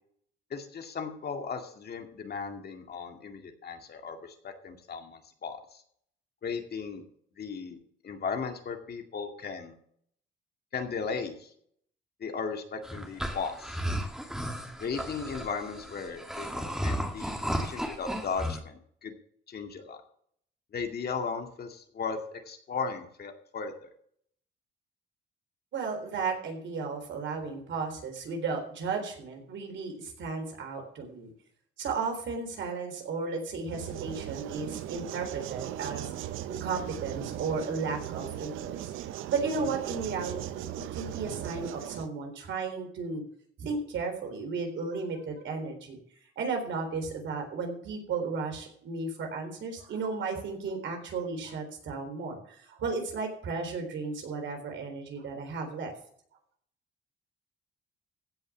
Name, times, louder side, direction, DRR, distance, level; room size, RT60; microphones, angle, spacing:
voice 1, 0.5-5.8 6.4-7.0 7.4-7.8 8.0-9.7 10.7-11.5 12.2-13.8 14.8-19.1 19.5-20.0 20.7-23.9, left 5 dB, 55° left, 5 dB, 2.2 m, -36 dB
sound 1, 12.8-18.6, equal, 5° right, 2.1 m, -34 dB
voice 2, 25.7-31.3 31.8-36.1 36.5-38.9 39.3-40.7 40.9-43.2 43.6-46.0 46.4-55.9, right 4 dB, 70° right, 3 dB, 3.8 m, -34 dB
sound 2, 33.7-42.1, right 12 dB, 90° right, 0.7 m, -38 dB
16.0 x 5.5 x 7.0 m, 0.63 s
cardioid pair, 90°, 20 cm